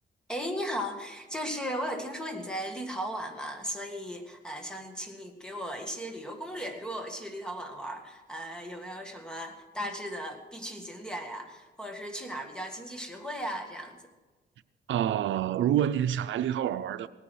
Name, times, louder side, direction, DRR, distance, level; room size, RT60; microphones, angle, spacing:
voice 1, 0.3-14.0, equal, 5° left, 1.9 m, -36 dB
voice 2, 14.9-17.1, right 10 dB, 85° right, 0.6 m, -27 dB
18.5 x 9.8 x 6.4 m
wide cardioid pair, 130°, 19 cm